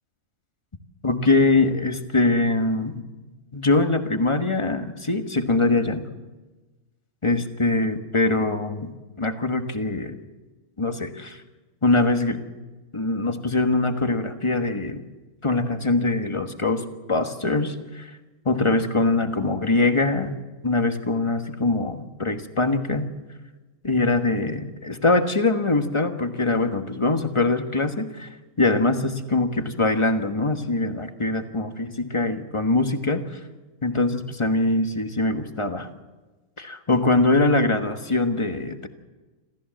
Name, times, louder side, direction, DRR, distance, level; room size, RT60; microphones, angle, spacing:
voice 1, 1.0-3.0 3.5-6.1 7.2-10.1 10.8-11.4 11.8-12.4 12.9-15.0 15.4-18.1 18.4-23.1 23.8-28.3 28.6-33.4 33.8-35.9 36.6-38.9, left 2 dB, 20° left, 7 dB, 1.3 m, -23 dB
27.5 x 14.5 x 7.6 m, 1.2 s
omnidirectional pair, 1.5 m